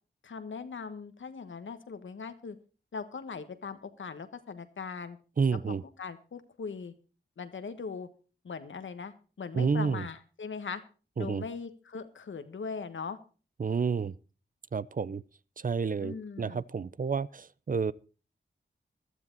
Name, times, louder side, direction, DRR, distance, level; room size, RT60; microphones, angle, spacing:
voice 1, 0.2-2.6 2.9-5.2 5.7-6.9 7.4-8.1 8.4-10.8 11.2-13.2 16.0-16.6, left 5 dB, 80° left, 1.4 m, -40 dB
voice 2, 5.4-5.8 9.5-10.0 11.2-11.4 13.6-14.1 14.7-15.2 15.6-17.9, right 5 dB, 45° right, 0.5 m, -30 dB
15.0 x 12.5 x 4.0 m
cardioid pair, 60°, 20 cm